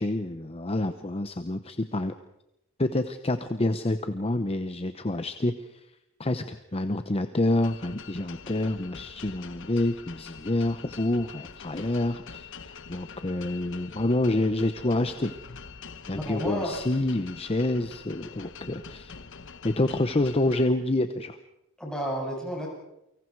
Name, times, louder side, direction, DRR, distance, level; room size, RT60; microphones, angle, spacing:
voice 1, 0.0-2.1 2.8-5.8 6.2-15.3 16.1-19.1 19.6-21.3, left 1 dB, 25° left, 9 dB, 0.9 m, -28 dB
sound 1, 7.6-20.7, left 5 dB, 60° left, 1.1 m, -45 dB
voice 2, 16.2-16.8 21.8-22.7, equal, 5° left, -3 dB, 8.0 m, -31 dB
29.5 x 24.5 x 4.7 m, 0.86 s
head